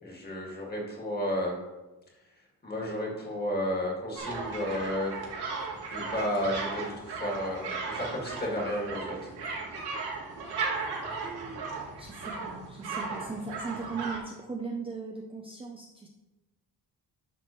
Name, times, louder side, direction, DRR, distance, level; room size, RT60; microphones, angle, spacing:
voice 1, 0.0-1.6 2.6-5.2 5.9-9.2, left 1 dB, 25° left, -2 dB, 2.0 m, -32 dB
sound 1, 4.2-14.2, right 4 dB, 80° right, 2.0 m, -36 dB
voice 2, 11.2-11.7 12.0-16.1, right 4 dB, 15° right, 0 dB, 0.5 m, -38 dB
10.0 x 6.1 x 3.1 m, 1.1 s
wide cardioid pair, 175°, 39 cm